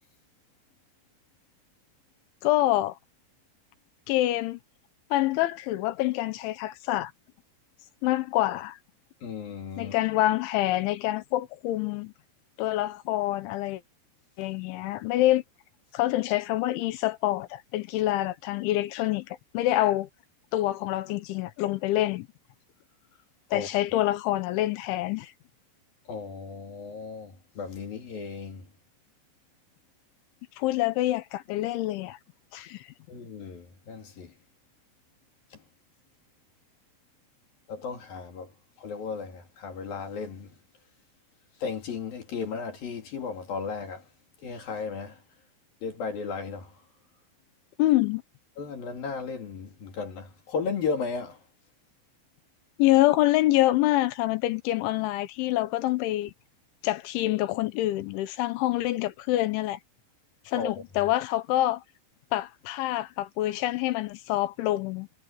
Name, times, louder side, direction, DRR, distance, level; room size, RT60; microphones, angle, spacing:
voice 1, 2.4-3.0 4.1-4.6 5.1-7.1 8.0-8.8 9.8-12.1 12.6-13.8 14.4-15.4 15.9-20.1 20.5-22.3 23.5-25.3 30.6-32.2 32.5-32.9 47.8-48.2 52.8-56.3 56.8-59.8 60.5-61.8 62.3-65.1, left 15 dB, 80° left, 3.4 m, -26 dB
voice 2, 9.2-9.9 23.5-23.7 26.1-28.7 33.1-34.3 37.7-38.5 38.8-40.5 41.6-44.0 44.4-45.2 45.8-46.7 48.6-51.4 60.5-60.8, left 5 dB, 50° left, 4.3 m, -35 dB
omnidirectional pair, 5.5 m